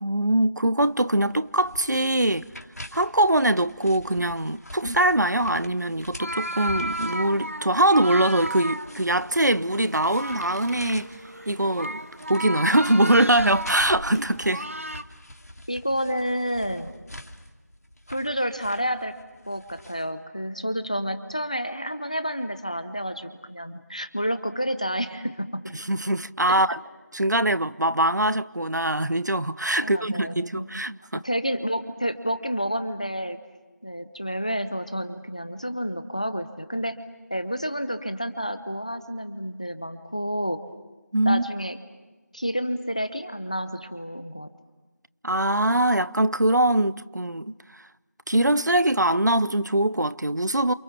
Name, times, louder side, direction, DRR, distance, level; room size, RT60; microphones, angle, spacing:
voice 1, 0.0-2.5 2.9-11.1 11.5-12.0 12.3-14.7 25.7-26.8 27.1-31.2 41.1-41.4 45.2-47.5 48.3-50.7, right 1 dB, 90° right, 1.0 m, -22 dB
sound 1, 0.8-20.1, left 1 dB, 65° left, 2.5 m, -46 dB
sound 2, 6.2-15.0, right 1 dB, 50° right, 1.0 m, -34 dB
sound 3, 9.7-14.9, equal, 65° right, 6.5 m, -43 dB
voice 2, 15.7-16.9 18.1-19.1 19.5-25.6 29.8-30.8 31.1-33.4 33.8-37.0 37.3-40.6 41.3-41.8 42.3-44.5, equal, 25° left, 0.9 m, -29 dB
29.0 x 28.5 x 7.2 m
figure-of-eight pair, 180°, 9 cm